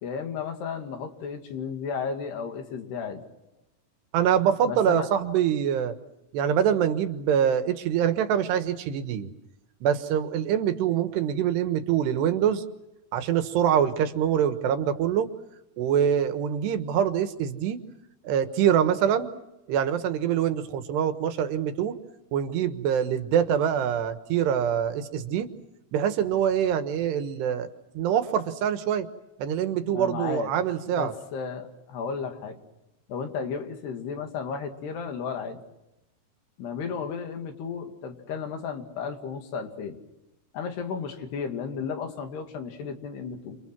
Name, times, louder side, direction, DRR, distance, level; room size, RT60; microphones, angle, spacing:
voice 1, 0.0-3.2 4.6-5.1 29.9-30.5 31.0-32.6 33.1-35.6 36.6-40.0 40.5-43.6, left 6 dB, 75° left, 5 dB, 4.5 m, -33 dB
voice 2, 4.1-6.0 6.3-9.3 9.8-12.6 13.1-15.3 15.8-17.8 18.3-19.3 19.7-22.0 22.3-25.5 25.9-27.7 28.0-29.1 29.4-31.1, right 9 dB, 80° right, 9 dB, 3.5 m, -24 dB
29.0 x 28.5 x 6.1 m, 0.92 s
omnidirectional pair, 4.8 m